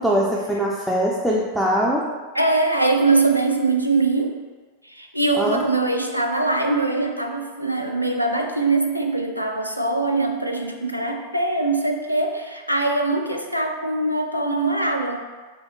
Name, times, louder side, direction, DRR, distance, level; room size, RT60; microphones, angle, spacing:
voice 1, 0.0-2.0 5.4-5.6, equal, ahead, -4 dB, 0.5 m, -22 dB
voice 2, 2.3-4.4 4.8-15.2, right 2 dB, 90° right, 2 dB, 0.4 m, -22 dB
4.9 x 2.0 x 4.4 m, 1.4 s
figure-of-eight pair, 90°, 0 cm